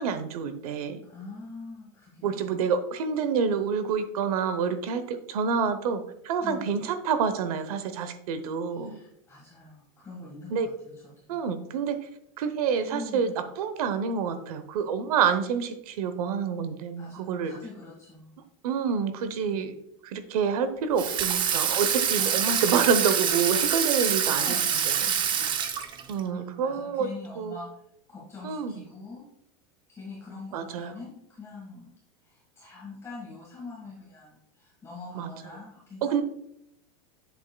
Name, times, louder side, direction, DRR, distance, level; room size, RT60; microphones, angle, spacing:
voice 1, 0.0-1.0 2.2-9.0 10.5-10.7 11.3-12.0 12.4-17.5 18.6-19.7 20.0-24.6 24.9-25.0 26.1-27.1 27.4-27.6 28.4-28.8 30.5-30.9 35.1-35.3 36.0-36.2, right 6 dB, 80° right, 11 dB, 0.9 m, -28 dB
voice 2, 1.1-2.5 6.4-6.7 8.7-11.3 12.9-13.2 17.0-18.4 19.5-19.7 22.1-22.6 24.3-25.5 25.8-27.7 28.1-29.3 29.9-31.9 32.2-36.2, left 3 dB, 15° left, -5 dB, 1.6 m, -44 dB
Water tap faucet / Sink (filling or washing), 21.0-26.2, right 8 dB, 25° right, 0.5 m, -26 dB
7.8 x 7.3 x 2.3 m, 0.79 s
supercardioid pair, 155°, 19 cm